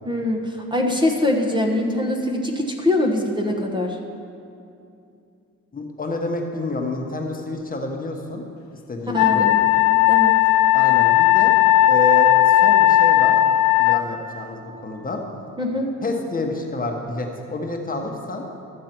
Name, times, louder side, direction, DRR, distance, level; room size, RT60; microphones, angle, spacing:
voice 1, 0.1-4.0 9.1-9.5 10.1-10.4 15.6-15.9, left 1 dB, 15° right, 1 dB, 1.1 m, -23 dB
voice 2, 5.7-8.4 8.9-9.5 10.7-11.5 11.9-13.4 13.8-15.2 16.0-18.4, left 2 dB, 30° left, 2 dB, 1.2 m, -28 dB
Wind instrument woodwind instrument, 9.2-14.0, left 14 dB, 65° left, 0.6 m, -16 dB
13.0 x 7.5 x 4.5 m, 2.6 s
cardioid pair, 90°, 30 cm